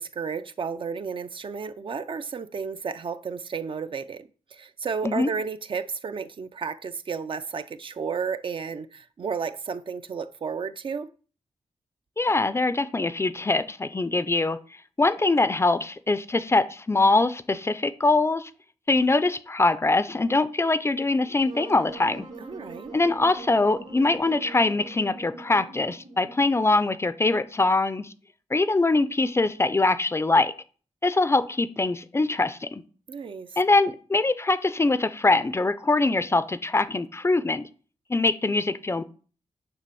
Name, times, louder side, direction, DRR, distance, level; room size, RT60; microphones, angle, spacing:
voice 1, 0.0-11.1 22.4-22.9 33.1-33.5, right 5 dB, 45° right, 0.5 m, -32 dB
voice 2, 12.2-14.6 15.0-18.5 18.9-22.3 22.9-28.1 28.5-30.5 31.0-32.8 33.6-37.7 38.1-39.0, left 3 dB, 20° left, 0.4 m, -23 dB
Wind instrument woodwind instrument, 21.4-26.5, right 3 dB, 65° right, 2.6 m, -43 dB
9.6 x 3.3 x 6.8 m
wide cardioid pair, 135°, 12 cm